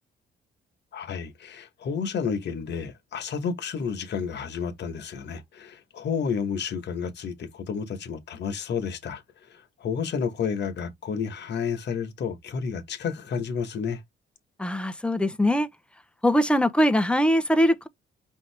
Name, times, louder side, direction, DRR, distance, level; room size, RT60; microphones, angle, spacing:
voice 1, 0.9-9.2 9.5-14.0, left 6 dB, 60° left, 1.2 m, -31 dB
voice 2, 14.6-15.7 16.2-17.9, equal, 5° left, 0.7 m, -22 dB
5.2 x 2.8 x 3.3 m
cardioid pair, 90°, 20 cm